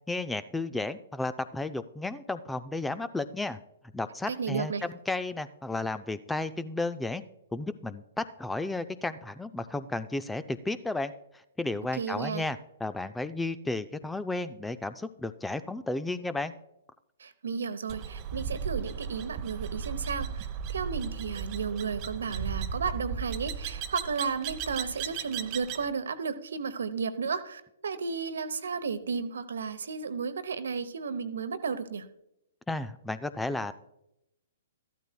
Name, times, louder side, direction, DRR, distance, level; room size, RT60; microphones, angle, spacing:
voice 1, 0.1-3.6 3.9-7.2 7.5-11.1 11.6-16.5 32.7-33.7, left 2 dB, 5° left, 13 dB, 0.4 m, -33 dB
voice 2, 4.3-4.8 11.9-12.4 17.2-32.1, right 5 dB, 65° right, 11 dB, 0.9 m, -33 dB
sound 1, 17.9-25.9, right 7 dB, 35° right, 0.7 m, -36 dB
14.0 x 12.0 x 2.3 m, 0.82 s
figure-of-eight pair, 115°, 0 cm